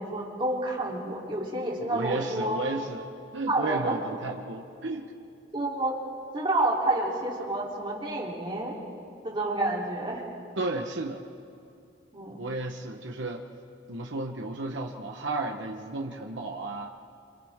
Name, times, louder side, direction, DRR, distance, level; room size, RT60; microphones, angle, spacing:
voice 1, 0.0-2.6 3.5-4.0 5.5-6.0 6.3-8.8 9.2-10.3 12.1-12.4, right 2 dB, 25° right, -4 dB, 3.5 m, -29 dB
voice 2, 1.8-5.1 10.6-11.2 12.4-13.5 13.9-16.9, right 2 dB, 80° right, 2 dB, 1.1 m, -33 dB
27.5 x 27.0 x 3.7 m, 2.5 s
head